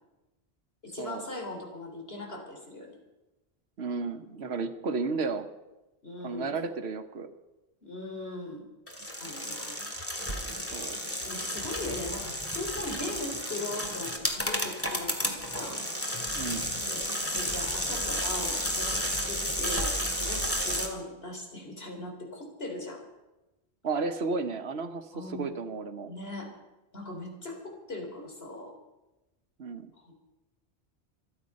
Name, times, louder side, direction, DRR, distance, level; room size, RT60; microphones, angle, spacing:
voice 1, 0.8-3.0 6.0-6.6 7.8-8.6 8.9-9.8 11.2-15.8 16.9-17.0 17.3-18.9 19.2-23.0 25.1-25.6 26.1-26.5 26.9-28.7 30.0-30.1, left 2 dB, 65° left, 2 dB, 3.7 m, -39 dB
voice 2, 3.8-5.5 6.2-7.3 10.6-11.0 16.3-16.7 23.8-26.1 29.6-29.9, right 4 dB, 75° right, 9 dB, 1.3 m, -33 dB
sound 1, 8.9-20.9, equal, 10° left, 2.2 m, -32 dB
26.5 x 9.4 x 5.3 m, 1.0 s
omnidirectional pair, 1.1 m